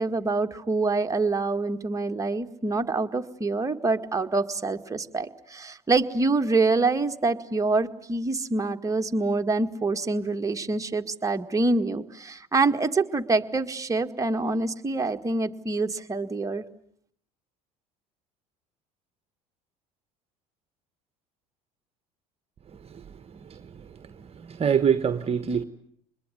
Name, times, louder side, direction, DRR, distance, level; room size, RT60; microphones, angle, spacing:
voice 1, 0.0-16.6, right 3 dB, 20° right, 1.9 m, -26 dB
voice 2, 24.4-25.6, right 7 dB, 35° right, 1.4 m, -24 dB
25.5 x 21.5 x 9.7 m
supercardioid pair, 80°, 18 cm